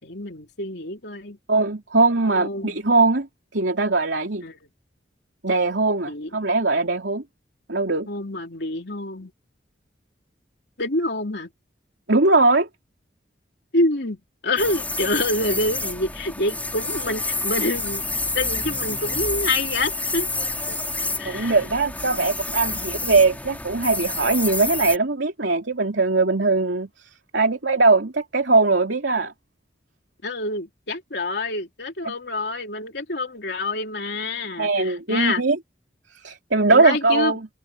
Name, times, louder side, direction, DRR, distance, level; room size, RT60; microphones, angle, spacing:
voice 1, 0.0-1.4 2.2-2.8 4.4-4.6 6.1-6.3 8.1-9.3 10.8-11.5 13.7-14.2 14.4-18.0 18.3-20.3 20.7-20.8 21.2-21.6 22.2-22.4 22.7-22.9 30.2-35.4 36.7-37.4, left 2 dB, 65° left, 3.3 m, -27 dB
voice 2, 1.5-3.3 3.5-4.4 5.4-7.2 7.7-8.1 12.1-12.7 21.2-26.9 27.3-29.3 34.6-35.6 36.2-37.5, right 3 dB, 90° right, 2.8 m, -20 dB
sound 1, 14.6-25.0, left 2 dB, 10° left, 3.3 m, -29 dB
head